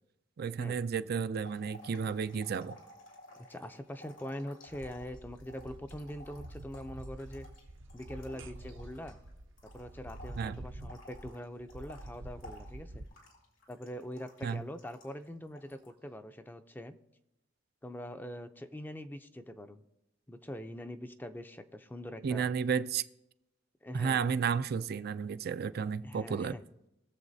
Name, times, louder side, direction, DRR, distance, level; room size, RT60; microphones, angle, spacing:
voice 1, 0.4-2.8 10.4-10.6 14.4-14.6 22.2-23.0 23.9-26.6, right 6 dB, 55° right, 0.4 m, -32 dB
sound 1, 1.4-9.3 9.6-15.3 15.6-15.9, left 1 dB, 85° left, 3.0 m, -55 dB
voice 2, 3.5-7.5 7.9-9.2 9.7-13.0 13.7-16.9 17.8-19.8 20.3-22.5 23.8-24.2 26.0-26.6, equal, 10° left, 0.5 m, -43 dB
sound 2, 4.7-13.1, right 1 dB, 80° right, 0.8 m, -48 dB
21.5 x 7.2 x 2.7 m
head